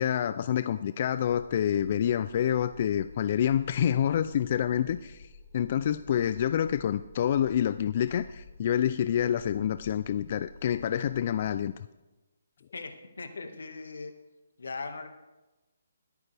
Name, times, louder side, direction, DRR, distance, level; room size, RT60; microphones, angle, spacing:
voice 1, 0.0-11.7, left 9 dB, 40° left, 13 dB, 0.3 m, -27 dB
sound 1, 4.5-11.6, left 2 dB, 5° left, 3.8 m, -51 dB
voice 2, 12.7-14.1 14.6-15.1, left 4 dB, 85° left, 7 dB, 1.6 m, -39 dB
21.0 x 9.2 x 3.4 m, 1.1 s
hypercardioid pair, 165°, 0 cm